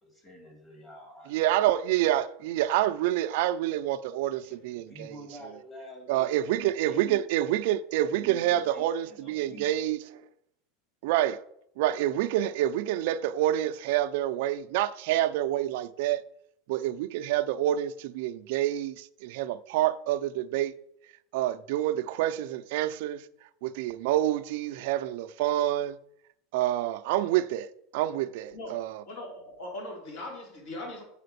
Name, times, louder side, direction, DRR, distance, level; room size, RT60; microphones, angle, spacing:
voice 1, 0.0-1.4 4.4-7.2 8.1-9.8, right 1 dB, 20° left, 2.3 m, -47 dB
voice 2, 1.3-5.1 6.1-10.0 11.0-11.4 11.8-16.2 16.7-20.7 21.3-23.3 23.6-26.0 26.5-29.0, right 13 dB, 60° right, 0.5 m, -27 dB
voice 3, 28.5-31.0, left 1 dB, 55° left, 4.1 m, -40 dB
7.7 x 5.0 x 6.7 m
supercardioid pair, 170°, 0 cm